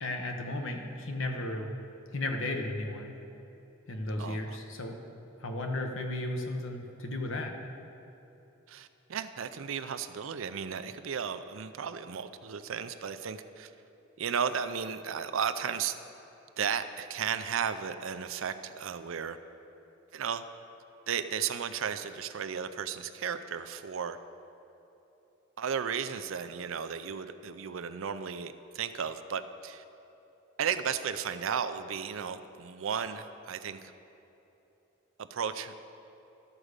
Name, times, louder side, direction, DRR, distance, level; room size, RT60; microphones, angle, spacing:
voice 1, 0.0-1.7 2.1-3.2 3.9-5.0 5.4-7.5, left 2 dB, 65° left, 3 dB, 1.0 m, -34 dB
voice 2, 4.2-4.6 8.7-13.7 14.2-15.9 16.6-19.4 20.1-20.4 21.1-24.2 25.6-29.8 30.6-33.9 35.2-35.9, right 7 dB, 70° right, 10 dB, 0.5 m, -34 dB
12.5 x 4.9 x 6.6 m, 3.0 s
head